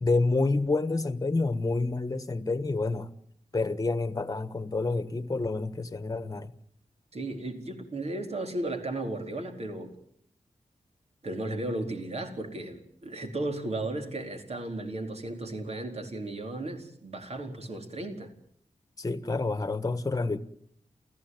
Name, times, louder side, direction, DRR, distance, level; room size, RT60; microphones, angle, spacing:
voice 1, 0.0-3.1 3.5-6.5 19.0-20.4, left 3 dB, 30° left, 1.4 m, -28 dB
voice 2, 7.1-9.9 11.2-18.3, right 2 dB, 55° right, 4.4 m, -35 dB
29.0 x 16.0 x 9.5 m
wide cardioid pair, 110°, 13 cm